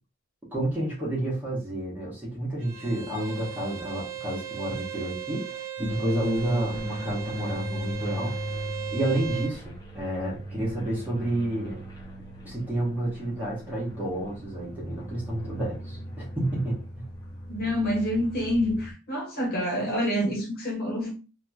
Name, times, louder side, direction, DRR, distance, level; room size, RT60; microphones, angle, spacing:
voice 1, 0.5-8.3 8.9-11.8 12.4-16.8, right 1 dB, 10° right, 1.0 m, -30 dB
Bowed string instrument, 2.6-9.6, right 11 dB, 60° right, 0.6 m, -37 dB
sound 1, 5.8-18.9, equal, 15° left, 0.6 m, -38 dB
voice 2, 17.5-21.1, equal, 45° left, 1.3 m, -27 dB
2.9 x 2.8 x 2.3 m
head